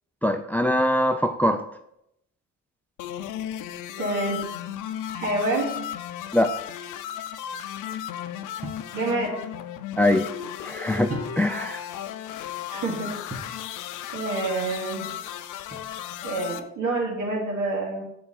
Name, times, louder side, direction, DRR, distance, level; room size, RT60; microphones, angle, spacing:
voice 1, 0.2-1.6 6.3-6.5 10.0-10.2 10.6-11.1 11.4-11.8, left 1 dB, 5° left, 8 dB, 0.4 m, -22 dB
sound 1, 3.0-16.6, left 10 dB, 85° left, 0.5 m, -35 dB
voice 2, 4.0-4.4 5.1-5.7 8.9-9.4 12.7-13.1 14.1-15.1 16.2-18.0, right 2 dB, 70° right, -3 dB, 2.8 m, -27 dB
sound 2, 8.6-8.9 11.1-11.7 13.3-13.6 15.7-16.2, right 1 dB, 30° right, 1.9 m, -37 dB
7.9 x 4.6 x 4.2 m, 0.80 s
cardioid pair, 90°, 30 cm